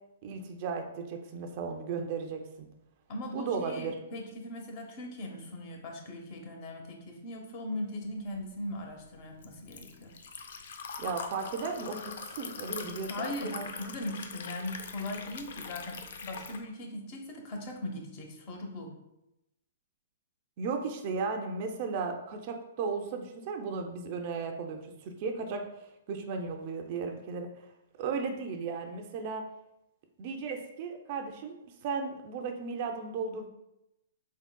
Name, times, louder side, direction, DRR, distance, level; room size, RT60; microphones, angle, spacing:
voice 1, 0.2-2.7 3.3-4.0 11.0-13.7 20.6-27.7 28.0-29.4 30.2-31.6 31.8-33.5, right 4 dB, 40° right, 4 dB, 0.4 m, -35 dB
voice 2, 3.1-10.1 13.0-18.9, left 1 dB, 35° left, 2 dB, 0.7 m, -39 dB
Liquid, 8.3-16.6, left 5 dB, 65° left, 0.4 m, -42 dB
4.0 x 3.6 x 2.2 m, 0.88 s
hypercardioid pair, 150°, 0 cm